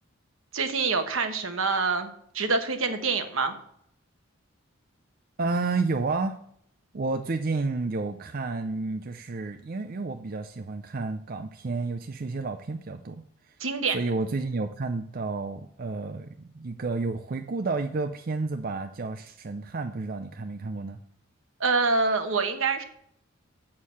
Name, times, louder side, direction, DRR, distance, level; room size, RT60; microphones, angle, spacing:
voice 1, 0.5-2.1 2.3-3.6 13.6-14.0 21.6-22.8, right 4 dB, 75° right, 7 dB, 1.2 m, -26 dB
voice 2, 5.4-6.4 6.9-13.6 13.9-21.0, right 3 dB, 45° right, 7 dB, 0.5 m, -31 dB
7.4 x 6.5 x 7.3 m, 0.69 s
head